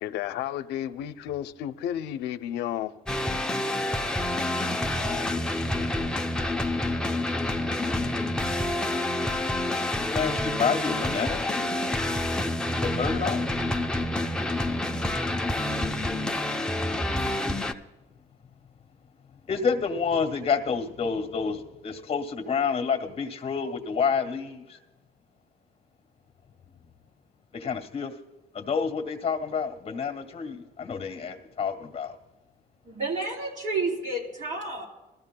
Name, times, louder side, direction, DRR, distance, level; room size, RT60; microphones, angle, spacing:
voice 1, 0.0-2.9, left 11 dB, 85° left, 11 dB, 0.6 m, -32 dB
sound 1, 3.1-17.7, left 1 dB, 5° left, 0.6 m, -28 dB
voice 2, 4.9-5.4 10.0-11.7 12.8-13.4 19.5-24.8 27.5-28.1 28.5-32.1, left 6 dB, 35° left, 6 dB, 1.6 m, -29 dB
voice 3, 32.8-34.9, right 3 dB, 50° right, -2 dB, 3.4 m, -30 dB
20.0 x 14.0 x 2.2 m, 1.1 s
cardioid pair, 110°, 17 cm